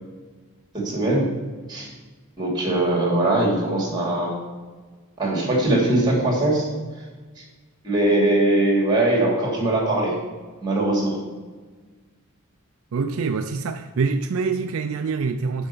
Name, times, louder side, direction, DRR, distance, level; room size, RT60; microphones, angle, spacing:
voice 1, 0.7-1.3 1.7-1.9 2.4-4.3 5.2-6.7 7.8-10.1 10.6-11.2, right 1 dB, 20° right, 2.8 m, -21 dB
voice 2, 12.9-15.7, right 4 dB, 65° right, 0.4 m, -25 dB
7.0 x 5.4 x 6.8 m
head